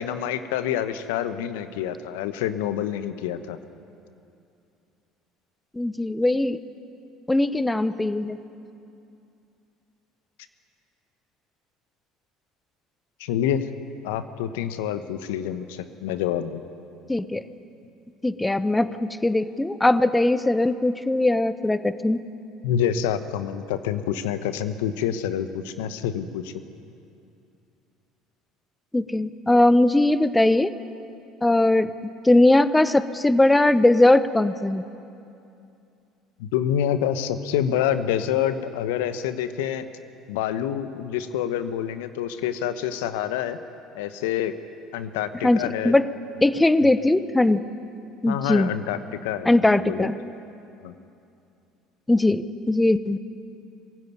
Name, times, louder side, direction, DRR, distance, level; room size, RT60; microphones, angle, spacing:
voice 1, 0.0-3.6 13.2-13.7 14.0-16.6 22.6-26.5 36.4-39.8 40.3-43.6 43.9-44.5 44.9-46.0 46.8-46.9 48.3-50.1 50.8-51.0, left 10 dB, 70° left, 11 dB, 1.1 m, -27 dB
voice 2, 5.7-6.6 7.3-8.4 17.1-17.4 18.2-22.2 28.9-30.7 31.4-31.9 32.2-34.8 45.4-46.1 46.4-47.6 48.2-48.7 49.4-50.2 52.1-53.2, left 2 dB, 10° left, 14 dB, 0.9 m, -20 dB
22.0 x 16.0 x 9.5 m, 2.6 s
hypercardioid pair, 65°, 0 cm